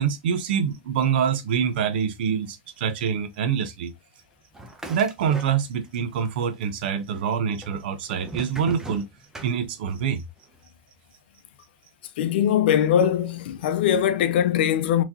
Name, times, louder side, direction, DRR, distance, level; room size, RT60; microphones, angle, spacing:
voice 1, 0.0-3.9 4.9-9.1 9.4-10.2, right 7 dB, 70° right, 0.7 m, -25 dB
sound 1, 4.5-6.0 6.2-7.0 7.6-10.1, right 2 dB, 10° right, 0.7 m, -39 dB
voice 2, 12.2-15.0, left 9 dB, 70° left, 0.5 m, -21 dB
3.6 x 3.0 x 2.6 m
hypercardioid pair, 115°, 6 cm